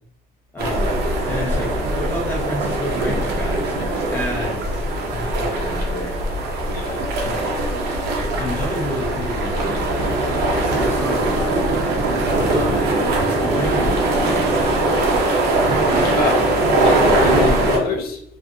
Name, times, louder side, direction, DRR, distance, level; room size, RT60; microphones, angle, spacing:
voice 1, 0.5-4.9 5.1-6.2 7.2-7.7 8.4-11.7 12.5-12.9 13.2-14.5 15.9-16.3, equal, 10° left, 1.0 m, -30 dB
sound 1, 0.6-17.8, right 2 dB, 75° right, 0.7 m, -20 dB
voice 2, 6.7-7.1 16.0-16.5 16.8-18.2, left 5 dB, 60° left, 0.6 m, -25 dB
2.6 x 2.4 x 2.7 m
cardioid pair, 110°, 17 cm